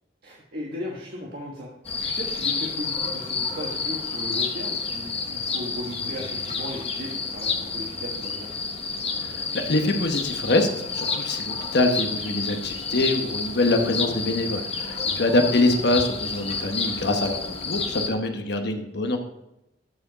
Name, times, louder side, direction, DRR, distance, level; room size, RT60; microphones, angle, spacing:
voice 1, 0.2-1.7 2.0-8.5 15.0-15.2, equal, 55° right, -3 dB, 1.4 m, -36 dB
sound 1, 1.8-18.1, left 4 dB, 35° left, 0.9 m, -30 dB
voice 2, 9.2-19.2, left 2 dB, 60° left, 5 dB, 1.0 m, -24 dB
13.0 x 4.9 x 4.0 m, 0.88 s
head